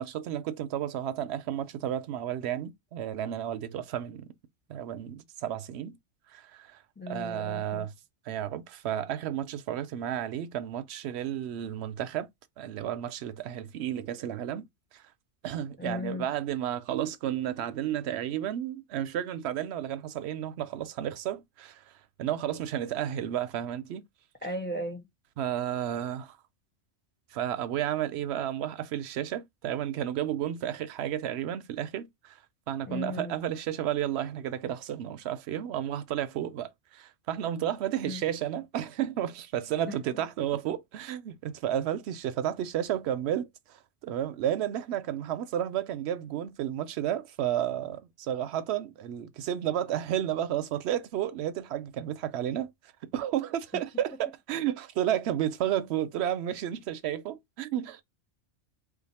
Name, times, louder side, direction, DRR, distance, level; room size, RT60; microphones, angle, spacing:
voice 1, 0.0-4.3 4.7-6.0 6.3-6.8 7.1-7.9 8.3-12.3 12.6-14.6 14.9-15.0 15.4-21.8 22.2-24.0 25.4-26.4 27.3-32.4 32.7-43.8 44.0-52.7 53.1-58.0, right 11 dB, 70° right, 0.8 m, -32 dB
voice 2, 7.0-7.9 15.8-16.3 24.4-25.1 32.9-33.4 38.0-38.2 53.7-53.8, left 1 dB, 10° left, 0.6 m, -36 dB
2.5 x 2.5 x 4.0 m
omnidirectional pair, 1.2 m